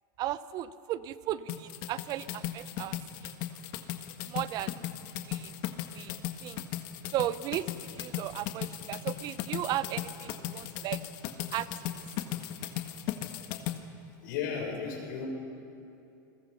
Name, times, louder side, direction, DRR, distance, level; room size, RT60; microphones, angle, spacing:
voice 1, 0.2-3.3 4.2-4.8 5.3-5.5 5.9-6.6 7.1-11.0 11.5-12.1, right 13 dB, 40° right, 15 dB, 0.7 m, -36 dB
sound 1, 1.5-13.8, left 12 dB, 50° left, 1.6 m, -37 dB
voice 2, 14.2-15.3, left 6 dB, 75° left, 0 dB, 6.9 m, -34 dB
29.5 x 21.5 x 5.7 m, 2.7 s
supercardioid pair, 140°, 10 cm